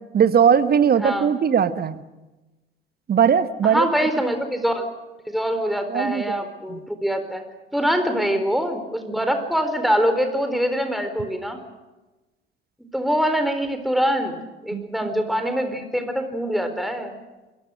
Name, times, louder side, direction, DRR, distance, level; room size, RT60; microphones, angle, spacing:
voice 1, 0.1-2.0 3.1-4.1 5.9-6.4 6.7-6.8 14.7-14.8, right 7 dB, 30° right, 13 dB, 1.3 m, -19 dB
voice 2, 3.6-4.9 5.3-7.4 7.7-11.6 12.9-14.3 14.6-17.1, equal, ahead, 7 dB, 4.2 m, -24 dB
29.0 x 22.0 x 6.5 m, 1.1 s
figure-of-eight pair, 60°, 30 cm